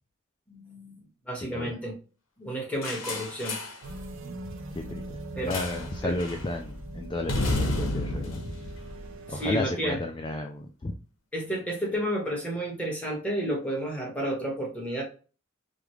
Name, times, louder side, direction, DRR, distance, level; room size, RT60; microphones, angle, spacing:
voice 1, 0.5-1.9 2.4-3.6 5.4-5.5 6.0-6.1 9.3-10.0 11.3-15.0, right 1 dB, 5° left, -2 dB, 1.4 m, -31 dB
voice 2, 1.3-1.7 4.7-5.0 5.4-8.4 9.3-10.9, left 2 dB, 25° left, 3 dB, 0.4 m, -33 dB
sound 1, 2.8-3.8 5.5-5.9 6.2-6.5 7.3-9.6, left 2 dB, 70° left, 1.2 m, -31 dB
sound 2, 3.8-9.6, right 1 dB, 65° right, 0.7 m, -41 dB
5.2 x 2.4 x 3.1 m, 0.36 s
head